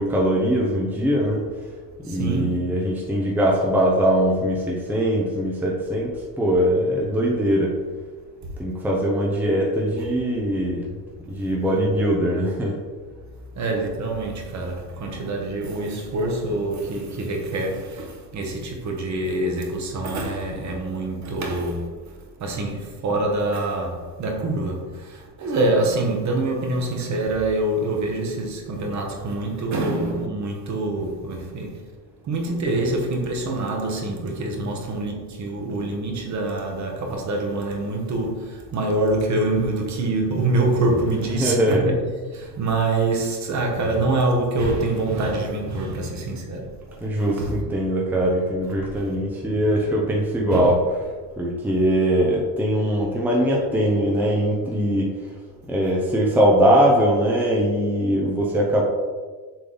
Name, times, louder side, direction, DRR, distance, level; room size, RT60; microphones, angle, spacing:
voice 1, 0.0-1.5 2.0-7.8 8.6-10.9 11.3-12.8 41.4-41.9 47.0-50.8 51.4-55.1 55.7-58.8, equal, 5° right, 0.8 m, -21 dB
voice 2, 2.0-2.6 13.5-22.1 22.4-31.8 32.2-41.9 42.3-47.6 50.5-50.7, right 2 dB, 40° right, 1.4 m, -25 dB
6.8 x 3.7 x 3.9 m
cardioid pair, 120°, 44 cm